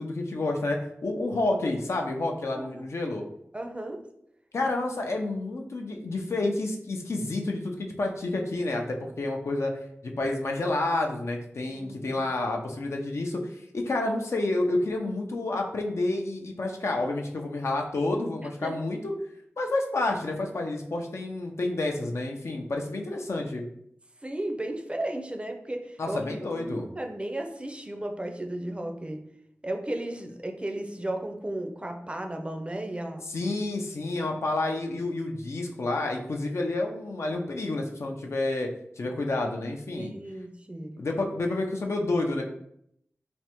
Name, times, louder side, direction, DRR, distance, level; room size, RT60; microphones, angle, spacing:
voice 1, 0.0-3.2 4.5-9.7 10.0-19.1 19.6-23.6 26.0-26.9 33.3-38.7 39.0-40.1 41.0-42.4, left 2 dB, 75° left, 2 dB, 0.4 m, -29 dB
voice 2, 3.5-4.1 11.7-12.2 18.4-18.8 24.2-26.2 26.5-29.2 29.6-33.2 34.2-34.3 40.0-41.0, right 1 dB, 25° right, 4 dB, 0.4 m, -35 dB
3.3 x 2.1 x 2.9 m, 0.72 s
wide cardioid pair, 55°, 5 cm